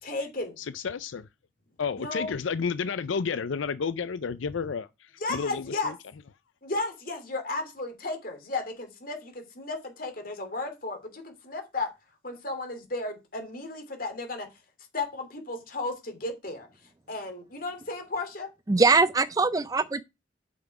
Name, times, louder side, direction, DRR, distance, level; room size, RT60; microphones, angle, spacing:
voice 1, 0.0-0.6 2.0-2.3 5.2-5.9 6.6-11.9 12.2-14.5 14.9-16.7 17.1-18.5, left 2 dB, 50° left, 2.9 m, -34 dB
voice 2, 0.6-1.3 1.8-4.9 5.3-5.9, left 5 dB, 80° left, 0.5 m, -31 dB
voice 3, 18.7-20.0, right 3 dB, 20° right, 0.4 m, -22 dB
8.7 x 5.9 x 4.8 m
head